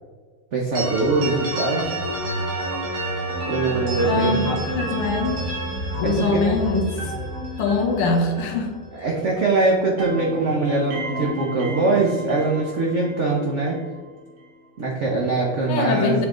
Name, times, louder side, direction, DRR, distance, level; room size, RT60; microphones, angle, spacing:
voice 1, 0.5-1.9 3.5-4.6 6.0-6.5 7.1-7.3 8.9-13.8 14.8-16.2, right 3 dB, 80° right, -2 dB, 0.6 m, -22 dB
sound 1, 0.7-9.5 9.8-13.9, right 1 dB, 65° right, 2.2 m, -30 dB
voice 2, 4.0-5.4 6.0-7.1 7.6-8.8 15.7-16.3, left 3 dB, 85° left, 3 dB, 1.9 m, -23 dB
7.4 x 4.5 x 3.7 m, 1.5 s
omnidirectional pair, 2.4 m